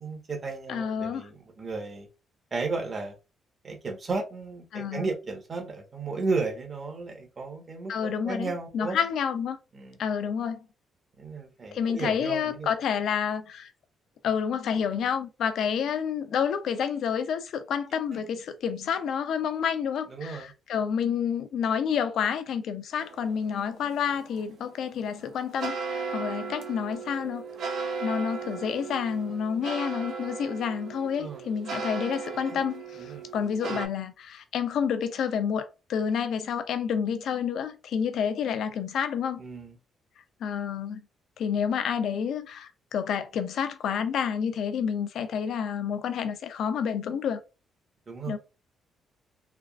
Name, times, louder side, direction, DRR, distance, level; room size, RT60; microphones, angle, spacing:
voice 1, 0.0-2.1 2.5-3.1 3.6-9.0 9.7-10.0 11.2-12.7 18.1-18.2 20.1-20.5 31.2-31.5 32.5-32.6 33.0-33.3 33.7-33.8 39.4-39.8 48.1-48.4, right 3 dB, 40° right, 1.1 m, -34 dB
voice 2, 0.7-1.2 4.7-5.0 7.9-9.6 10.0-10.6 11.7-13.7 14.2-27.4 28.0-39.4 40.4-41.0 41.4-47.4 48.3-48.4, left 7 dB, 70° left, 0.5 m, -29 dB
sound 1, 23.0-33.9, right 5 dB, 75° right, 0.6 m, -37 dB
3.4 x 2.3 x 2.3 m
cardioid pair, 90°, 0 cm